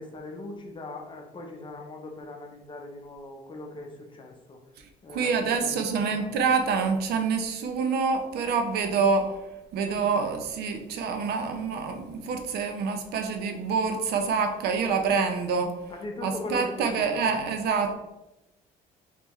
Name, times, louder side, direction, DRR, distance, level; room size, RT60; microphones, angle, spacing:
voice 1, 0.0-4.6 5.0-6.4 15.9-17.3, left 2 dB, 30° left, 2 dB, 0.7 m, -40 dB
voice 2, 5.1-9.3 9.7-15.7 16.2-17.9, right 5 dB, 70° right, 6 dB, 0.6 m, -26 dB
3.4 x 3.3 x 3.1 m, 0.98 s
cardioid pair, 110°, 17 cm